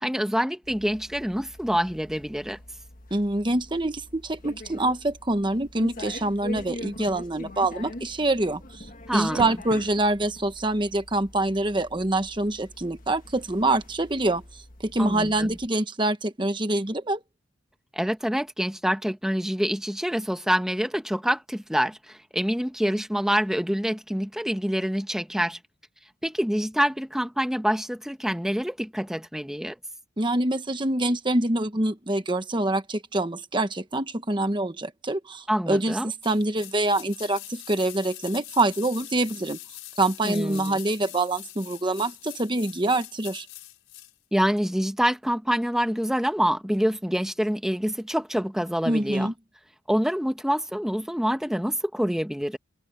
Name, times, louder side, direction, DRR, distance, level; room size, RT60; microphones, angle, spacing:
voice 1, 0.0-2.6 9.1-9.5 15.0-15.5 17.9-25.6 26.2-29.7 35.5-36.1 40.2-40.8 44.3-49.3 49.9-52.6, equal, ahead, 1.1 m, -26 dB
sound 1, 0.6-15.7, left 1 dB, 45° left, 1.5 m, -43 dB
voice 2, 3.1-8.9 9.1-17.2 30.2-39.6 40.0-43.5 48.9-49.3, right 2 dB, 25° right, 1.0 m, -25 dB
sound 2, 36.2-44.1 44.4-44.5, left 15 dB, 80° left, 5.7 m, -43 dB
head